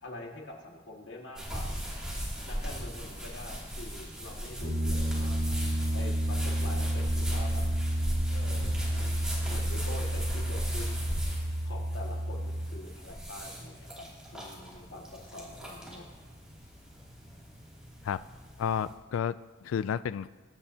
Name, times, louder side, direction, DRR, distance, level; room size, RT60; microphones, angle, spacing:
voice 1, 0.0-1.7 2.5-5.4 5.9-7.6 8.3-11.1 11.6-16.1, left 2 dB, 60° left, 0 dB, 1.9 m, -45 dB
sound 1, 1.4-18.9, equal, 5° right, 2.6 m, -38 dB
Piano, 4.6-12.7, equal, 40° right, 2.0 m, -30 dB
voice 2, 18.6-20.3, left 8 dB, 85° left, 15 dB, 0.3 m, -31 dB
22.0 x 9.6 x 2.8 m, 1.4 s
head